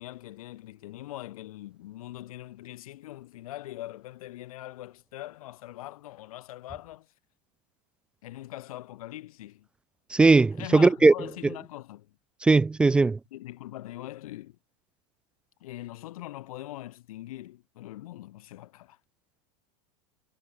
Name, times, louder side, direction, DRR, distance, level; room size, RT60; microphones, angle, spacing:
voice 1, 0.0-7.1 8.2-9.7 10.5-12.1 12.9-14.6 15.6-19.0, left 15 dB, 65° left, 7.3 m, -42 dB
voice 2, 10.1-11.1 12.4-13.2, right 3 dB, 5° right, 0.3 m, -19 dB
supercardioid pair, 165°, 19 cm